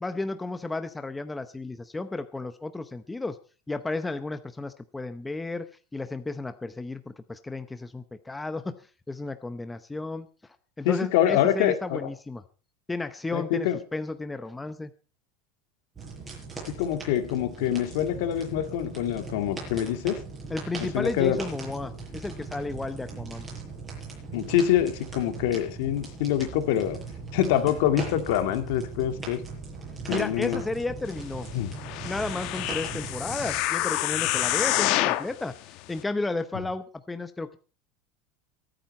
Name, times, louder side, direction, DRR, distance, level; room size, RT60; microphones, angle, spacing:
voice 1, 0.0-3.4 3.7-5.7 5.9-10.3 10.8-12.4 12.9-14.9 20.5-23.5 30.1-31.5 32.0-37.6, left 2 dB, 10° left, 10 dB, 0.7 m, -33 dB
voice 2, 10.8-12.1 13.3-13.8 16.8-20.2 20.8-21.4 24.3-27.0 27.3-29.4 30.1-30.6 31.5-31.7, left 11 dB, 70° left, 8 dB, 2.0 m, -25 dB
sound 1, 15.9-33.6, right 4 dB, 15° right, 7.6 m, -39 dB
sound 2, 31.8-35.3 35.9-36.0, left 15 dB, 50° left, 1.1 m, -27 dB
24.0 x 9.0 x 4.2 m, 0.36 s
supercardioid pair, 155°, 0 cm